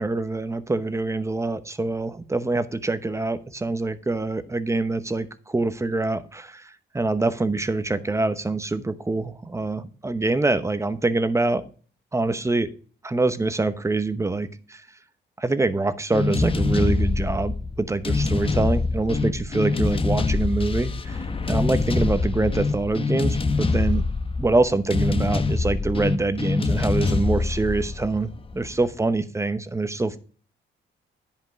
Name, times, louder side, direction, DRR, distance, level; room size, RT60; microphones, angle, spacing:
voice 1, 0.0-11.6 12.1-12.7 13.0-14.8 15.4-24.1 24.4-30.2, right 2 dB, 15° right, 13 dB, 0.9 m, -25 dB
sound 1, 16.1-28.9, left 3 dB, 25° left, 1.0 m, -25 dB
10.5 x 5.3 x 4.7 m, 0.41 s
cardioid pair, 90°, 20 cm